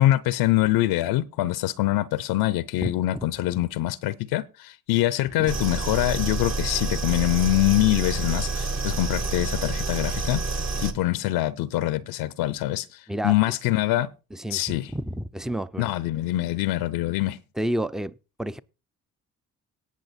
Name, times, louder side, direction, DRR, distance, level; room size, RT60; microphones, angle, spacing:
voice 1, 0.0-10.4 10.8-14.1 14.5-14.9 15.8-17.4, left 15 dB, 65° left, 0.7 m, -24 dB
sound 1, 5.5-10.9, right 3 dB, 40° right, 1.6 m, -28 dB
voice 2, 14.3-15.9 17.6-18.6, right 1 dB, ahead, 0.5 m, -30 dB
18.0 x 6.2 x 4.3 m
hypercardioid pair, 40°, 40 cm